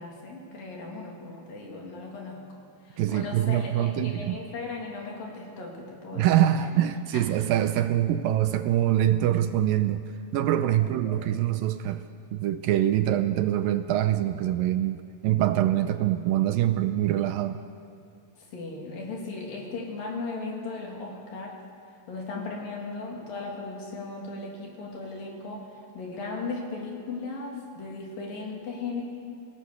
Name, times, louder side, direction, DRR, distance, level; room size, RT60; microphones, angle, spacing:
voice 1, 0.0-2.4 2.9-6.3 7.1-7.2 10.8-11.2 18.5-21.6 22.1-25.6 25.9-29.0, left 3 dB, 65° left, 0 dB, 4.6 m, -37 dB
voice 2, 3.0-4.4 6.1-10.0 10.3-12.0 12.3-17.6, right 12 dB, 80° right, 9 dB, 2.3 m, -24 dB
26.5 x 17.5 x 7.0 m, 2.3 s
omnidirectional pair, 4.4 m